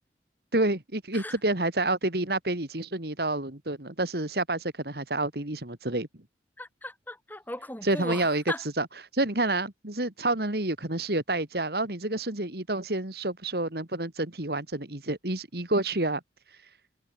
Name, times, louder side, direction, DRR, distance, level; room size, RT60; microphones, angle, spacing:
voice 1, 0.5-6.1 7.8-8.4 8.8-8.9 9.1-16.2, right 2 dB, 60° right, 2.6 m, -28 dB
voice 2, 6.6-8.6, left 1 dB, 10° left, 5.7 m, -37 dB
head